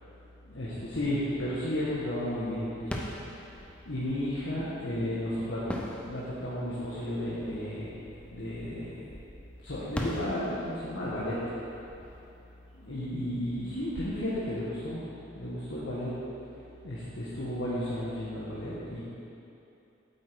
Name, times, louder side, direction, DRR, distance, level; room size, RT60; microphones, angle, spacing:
voice 1, 0.5-2.9 3.9-5.6 6.0-7.9 8.3-9.0 9.6-11.4 12.8-15.0 15.3-16.2 16.8-19.0, left 1 dB, 75° left, -9 dB, 1.6 m, -33 dB
sound 1, 2.8-13.4, equal, 5° left, 0.7 m, -42 dB
8.6 x 7.8 x 4.8 m, 2.9 s
head